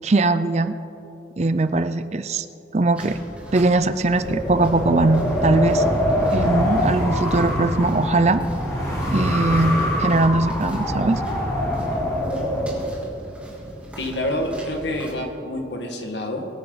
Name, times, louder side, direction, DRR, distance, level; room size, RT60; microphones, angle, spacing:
voice 1, 0.0-0.8 1.4-2.5 2.7-3.2 3.5-5.8 6.3-8.4 9.1-11.2, right 2 dB, 35° right, 12 dB, 0.5 m, -20 dB
sound 1, 2.9-15.1, equal, 5° right, 2.9 m, -40 dB
Wind, 4.1-12.9, equal, 20° left, 3.3 m, -24 dB
voice 2, 14.0-16.5, left 1 dB, 80° left, 3 dB, 1.9 m, -27 dB
23.5 x 10.5 x 4.0 m, 2.9 s
head